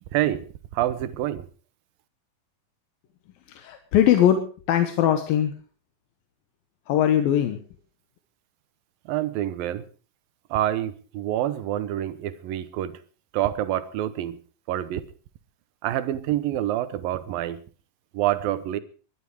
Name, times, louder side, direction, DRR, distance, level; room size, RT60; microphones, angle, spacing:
voice 1, 0.1-0.5 0.7-1.5 9.1-9.8 10.5-13.0 13.3-14.4 14.7-15.0 15.8-17.6 18.1-18.8, right 13 dB, 75° right, 2.7 m, -27 dB
voice 2, 3.5-5.5 6.9-7.6, left 10 dB, 75° left, 2.9 m, -21 dB
21.5 x 12.0 x 4.9 m
omnidirectional pair, 4.3 m